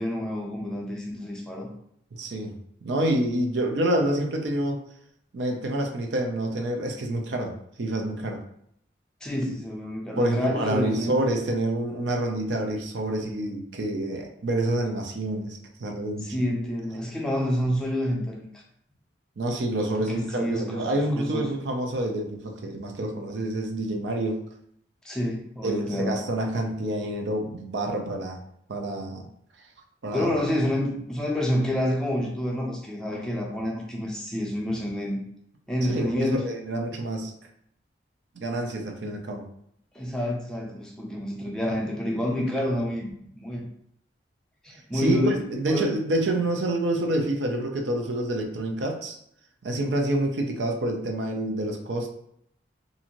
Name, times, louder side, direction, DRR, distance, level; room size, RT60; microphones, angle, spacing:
voice 1, 0.0-1.7 9.2-11.2 16.2-18.6 20.1-21.5 25.0-26.2 30.1-35.2 35.7-36.5 39.9-43.1 43.4-43.7 44.6-45.4 45.7-45.9, left 1 dB, 5° left, -2 dB, 0.5 m, -28 dB
voice 2, 2.1-2.5 2.8-4.8 5.3-8.4 10.2-16.5 19.4-24.4 25.6-28.4 28.7-29.3 30.0-30.3 35.9-37.3 38.4-39.4 44.9-49.2 49.6-52.1, right 1 dB, 75° right, 2 dB, 0.5 m, -27 dB
2.6 x 2.5 x 2.9 m, 0.71 s
head